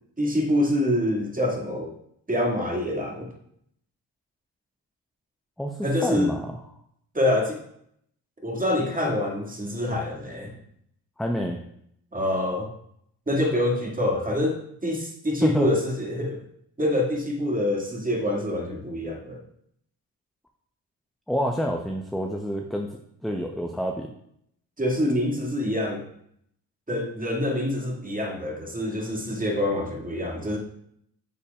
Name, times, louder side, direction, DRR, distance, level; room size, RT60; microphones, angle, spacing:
voice 1, 0.2-1.9 2.3-3.3 5.8-6.3 7.1-7.6 8.4-10.6 12.1-12.7 13.3-16.4 16.8-19.4 24.8-26.1 26.9-30.6, left 1 dB, 15° right, -1 dB, 2.1 m, -26 dB
voice 2, 5.6-6.5 11.2-11.6 15.4-15.7 21.3-24.1, equal, ahead, 2 dB, 0.7 m, -28 dB
9.7 x 6.8 x 2.4 m, 0.72 s
hypercardioid pair, 45°, 48 cm